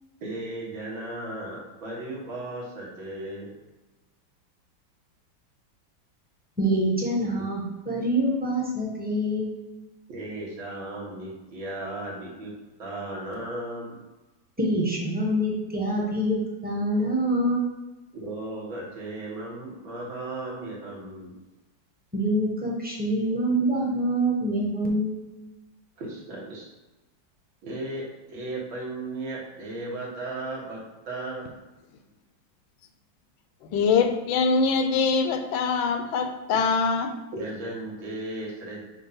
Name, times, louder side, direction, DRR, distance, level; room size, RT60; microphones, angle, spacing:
voice 1, 0.2-3.5 10.1-12.5 12.8-14.0 18.1-21.4 26.0-26.7 27.6-31.5 37.3-38.9, right 2 dB, 80° right, -4 dB, 2.4 m, -35 dB
voice 2, 6.6-9.5 14.6-17.6 22.1-25.1, right 1 dB, 5° right, -4 dB, 0.8 m, -25 dB
voice 3, 33.7-37.1, left 5 dB, 85° left, 7 dB, 1.4 m, -23 dB
6.4 x 2.6 x 5.6 m, 1.1 s
omnidirectional pair, 2.1 m